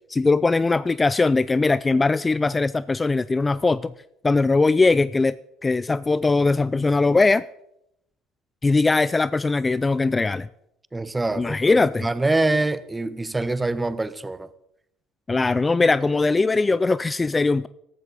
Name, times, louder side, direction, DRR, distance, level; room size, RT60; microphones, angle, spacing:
voice 1, 0.1-3.9 4.2-5.3 5.6-7.4 8.6-10.5 11.4-12.1 15.3-17.7, left 3 dB, 20° left, 0.4 m, -20 dB
voice 2, 10.9-14.5, right 2 dB, 15° right, 0.9 m, -25 dB
14.5 x 13.0 x 4.1 m
hypercardioid pair, 70°, 0 cm